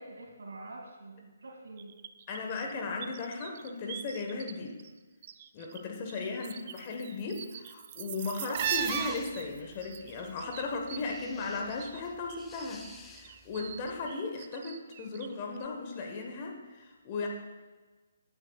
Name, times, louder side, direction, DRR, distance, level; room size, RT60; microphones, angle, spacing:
voice 1, 0.0-1.9 6.1-6.4, right 2 dB, 70° right, 0 dB, 2.7 m, -47 dB
sound 1, 1.8-4.5 4.8-5.8 6.1-12.0 12.3-15.3 15.6-15.7, right 10 dB, 40° right, 0.4 m, -39 dB
voice 2, 2.3-4.7 5.5-17.3, left 3 dB, 35° left, 2 dB, 1.4 m, -36 dB
sound 2, 8.5-14.1, left 3 dB, 10° left, 0.7 m, -51 dB
14.5 x 8.8 x 2.4 m, 1.3 s
figure-of-eight pair, 140°, 0 cm